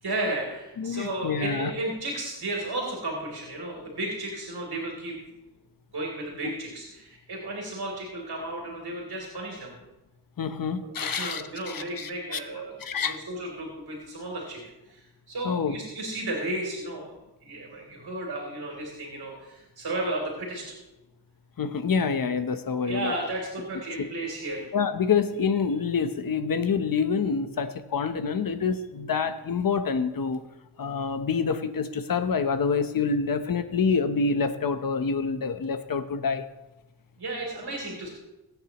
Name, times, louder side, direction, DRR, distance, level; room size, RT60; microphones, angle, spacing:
voice 1, 0.0-5.2 5.9-9.7 11.0-12.7 13.0-14.6 14.9-17.1 17.4-20.7 22.8-24.7 37.2-38.1, right 1 dB, 65° right, -1 dB, 3.2 m, -33 dB
voice 2, 0.8-1.7 10.4-12.4 12.8-13.2 15.4-15.8 21.6-23.1 24.7-30.5 30.8-36.4, left 5 dB, 55° left, 9 dB, 0.9 m, -27 dB
21.5 x 9.1 x 3.0 m, 1.0 s
wide cardioid pair, 120°, 40 cm